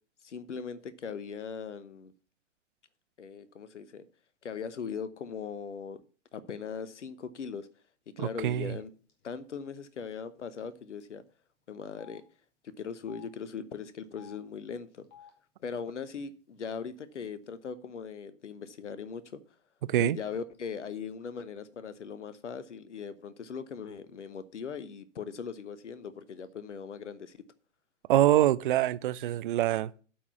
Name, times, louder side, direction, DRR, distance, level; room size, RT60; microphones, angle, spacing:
voice 1, 0.2-2.1 3.2-4.1 4.4-6.0 6.3-7.7 8.2-8.9 9.2-11.2 11.7-12.2 12.8-15.1 15.6-19.4 20.0-27.4, left 6 dB, 70° left, 1.0 m, -39 dB
voice 2, 8.2-8.8 19.9-20.2 28.1-30.0, right 13 dB, 45° right, 0.4 m, -25 dB
Telephone, 9.1-9.3 9.5-9.7 10.6-10.7 11.0-11.1 11.9-12.2 12.9-13.3 14.0-14.4 15.0-15.3 16.1-16.2 16.5-17.2, left 8 dB, 30° left, 2.1 m, -54 dB
8.6 x 4.8 x 6.8 m
figure-of-eight pair, 105°, 37 cm